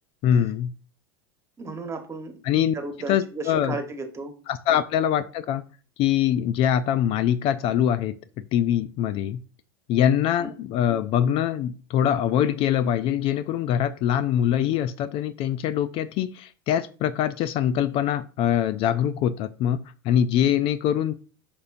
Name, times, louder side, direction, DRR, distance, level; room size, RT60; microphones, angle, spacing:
voice 1, 0.2-0.7 2.4-2.7 3.1-3.8 4.5-5.6 6.0-8.1 8.5-9.4 9.9-21.1, left 10 dB, 50° left, 15 dB, 0.4 m, -23 dB
voice 2, 1.6-2.4 2.7-4.3 4.7-4.8 10.2-10.5, right 3 dB, 20° right, 6 dB, 1.3 m, -34 dB
6.7 x 5.3 x 2.6 m, 0.38 s
hypercardioid pair, 95°, 13 cm